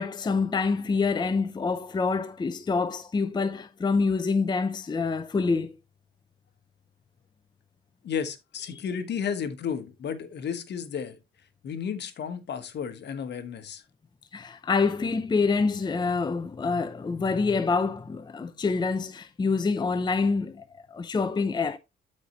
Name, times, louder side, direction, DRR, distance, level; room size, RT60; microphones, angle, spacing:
voice 1, 0.0-5.8 8.7-8.8 14.3-21.8, left 4 dB, 20° left, 0.6 m, -26 dB
voice 2, 8.0-11.2 11.6-13.8, left 7 dB, 60° left, 1.3 m, -33 dB
12.5 x 4.4 x 2.9 m
cardioid pair, 90°, 20 cm